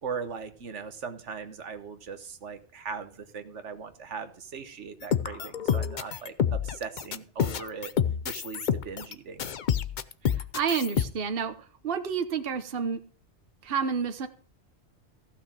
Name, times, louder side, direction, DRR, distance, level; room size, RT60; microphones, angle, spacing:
voice 1, 0.0-7.9 8.2-9.5, right 5 dB, 90° right, 9 dB, 1.5 m, -39 dB
sound 1, 5.0-9.1 9.4-11.0, left 8 dB, 50° left, 0.7 m, -28 dB
voice 2, 10.5-11.5 11.8-13.0 13.6-14.3, right 6 dB, 55° right, 8 dB, 1.2 m, -29 dB
15.0 x 5.8 x 7.3 m, 0.42 s
omnidirectional pair, 1.2 m